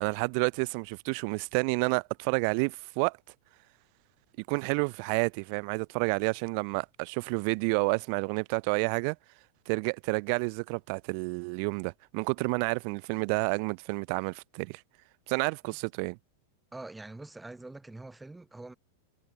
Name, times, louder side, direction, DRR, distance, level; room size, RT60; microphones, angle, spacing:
voice 1, 0.0-3.2 4.5-9.2 9.7-14.8 15.3-16.2, right 39 dB, 45° right, 0.4 m, -30 dB
voice 2, 16.7-18.7, right 2 dB, 5° right, 0.8 m, -44 dB
figure-of-eight pair, 90°, 0 cm